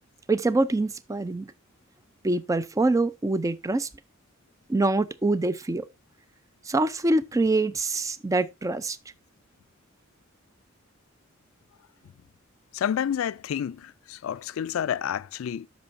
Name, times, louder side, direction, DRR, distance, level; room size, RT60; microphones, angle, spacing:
voice 1, 0.3-1.5 2.2-3.9 4.7-5.8 6.6-9.0, right 2 dB, 15° right, 0.4 m, -25 dB
voice 2, 12.7-15.7, left 9 dB, 75° left, 0.3 m, -29 dB
12.5 x 5.3 x 2.5 m
head